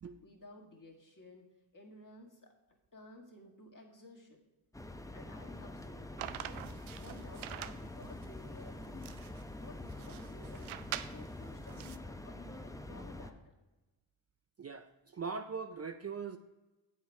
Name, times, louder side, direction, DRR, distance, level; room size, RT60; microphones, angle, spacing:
voice 1, 0.2-1.5 1.7-2.5 2.9-4.4 5.1-9.2 9.6-10.7 11.0-13.5, left 2 dB, 40° left, 0 dB, 2.1 m, -54 dB
sound 1, 4.7-13.3, left 1 dB, 5° left, 0.6 m, -46 dB
sound 2, 6.2-12.0, right 12 dB, 75° right, 0.6 m, -45 dB
voice 2, 14.6-16.4, right 5 dB, 35° right, 8 dB, 0.5 m, -41 dB
8.0 x 7.3 x 4.7 m, 1.1 s
cardioid pair, 65°, 48 cm